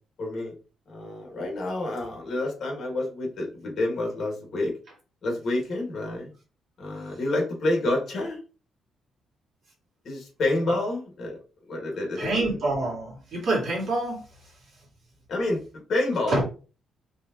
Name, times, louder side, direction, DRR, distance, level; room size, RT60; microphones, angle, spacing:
voice 1, 0.2-0.5 0.9-4.7 5.2-6.3 6.8-8.4 10.0-11.4 11.7-12.6 15.3-15.6 15.9-16.4, left 2 dB, 45° left, 0 dB, 1.9 m, -28 dB
voice 2, 12.2-14.2 16.3-16.4, right 2 dB, 50° right, -3 dB, 2.4 m, -26 dB
4.8 x 3.6 x 3.0 m, 0.35 s
cardioid pair, 160°, 0 cm